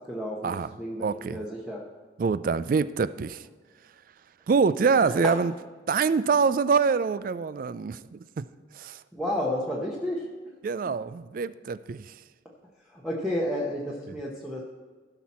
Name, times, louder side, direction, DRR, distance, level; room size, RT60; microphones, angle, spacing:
voice 1, 0.0-1.8 5.1-5.3 9.1-10.2 12.9-14.6, left 1 dB, 5° right, 0.9 m, -31 dB
voice 2, 1.0-1.4 2.2-3.4 4.5-5.5 5.9-8.5 8.7-9.0 10.6-12.1, right 5 dB, 45° right, 0.3 m, -25 dB
16.0 x 5.9 x 4.2 m
head